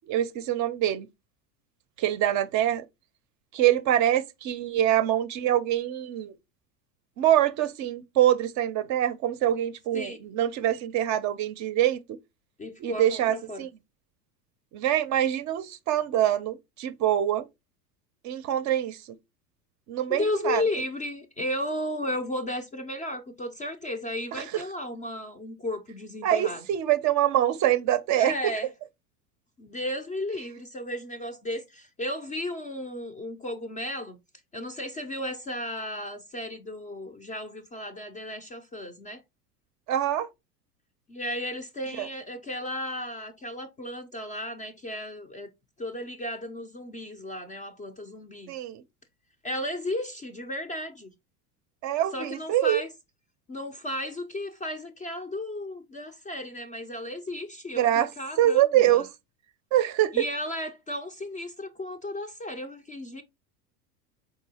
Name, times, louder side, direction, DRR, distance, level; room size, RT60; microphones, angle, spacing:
voice 1, 0.1-1.1 2.0-2.8 3.5-6.3 7.2-12.2 12.8-13.7 14.7-17.5 18.2-19.0 19.9-20.6 24.3-24.6 26.2-28.5 39.9-40.3 42.0-42.1 48.5-48.8 51.8-52.8 57.8-58.1 58.4-59.1 59.7-60.2, right 12 dB, 40° right, 0.5 m, -24 dB
voice 2, 12.6-13.6 20.1-26.6 28.1-28.7 29.6-34.2 34.5-39.2 41.1-45.5 45.8-48.5 49.4-51.1 52.1-52.9 53.5-59.0 60.1-63.2, left 1 dB, 20° left, 0.4 m, -34 dB
4.6 x 3.7 x 2.7 m
hypercardioid pair, 95°, 47 cm